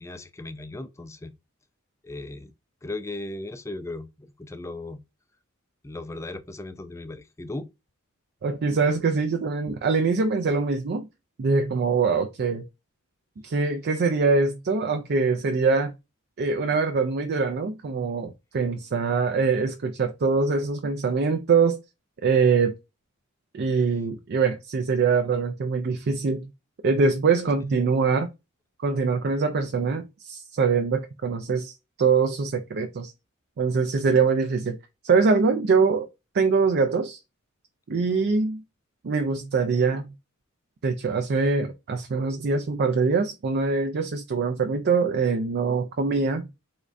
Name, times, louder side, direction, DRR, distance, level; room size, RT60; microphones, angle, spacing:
voice 1, 0.0-1.3 2.0-2.5 2.8-5.0 5.8-7.7 23.6-23.8, left 2 dB, 15° left, 0.3 m, -37 dB
voice 2, 8.4-11.1 11.4-12.7 13.4-15.9 16.4-21.8 22.2-22.7 23.5-26.5 26.8-28.3 28.8-33.1 33.6-34.8 35.0-36.1 36.3-37.2 37.9-38.6 39.0-40.1 40.8-46.5, right 4 dB, 50° right, 0.4 m, -23 dB
3.7 x 3.1 x 2.5 m
head